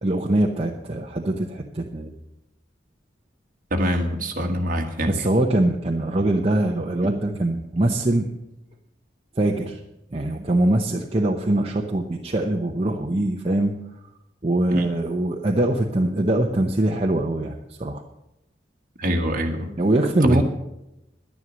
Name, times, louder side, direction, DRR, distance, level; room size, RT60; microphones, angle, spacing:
voice 1, 0.0-2.1 5.1-8.3 9.4-9.8 10.1-13.7 14.4-18.0 19.8-20.4, right 1 dB, 35° right, 2 dB, 0.8 m, -22 dB
voice 2, 3.7-5.3 14.7-14.9 19.0-19.7 20.2-20.4, equal, 50° right, 3 dB, 1.6 m, -24 dB
11.0 x 10.5 x 6.3 m, 0.90 s
head